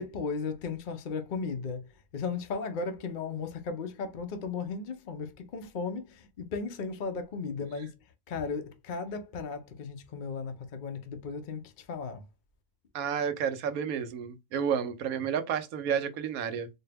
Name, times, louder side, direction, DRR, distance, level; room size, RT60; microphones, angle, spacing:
voice 1, 0.0-12.2, left 4 dB, 55° left, 0.5 m, -36 dB
voice 2, 12.9-16.7, right 7 dB, 75° right, 1.1 m, -31 dB
4.3 x 2.1 x 3.3 m
omnidirectional pair, 1.5 m